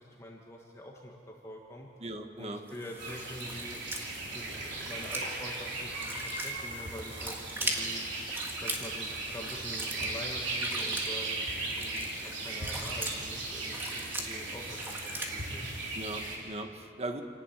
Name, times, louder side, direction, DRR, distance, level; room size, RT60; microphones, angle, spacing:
voice 1, 0.0-1.9 2.4-3.8 4.3-8.0 8.6-15.6, equal, 15° left, -1 dB, 1.4 m, -45 dB
voice 2, 2.0-2.6 15.9-17.2, right 1 dB, 35° right, 5 dB, 1.4 m, -39 dB
sound 1, 2.7-15.3, right 1 dB, 10° right, 2.0 m, -41 dB
sound 2, 3.0-16.4, right 2 dB, 65° right, 4.1 m, -37 dB
27.5 x 11.5 x 9.1 m, 2.4 s
head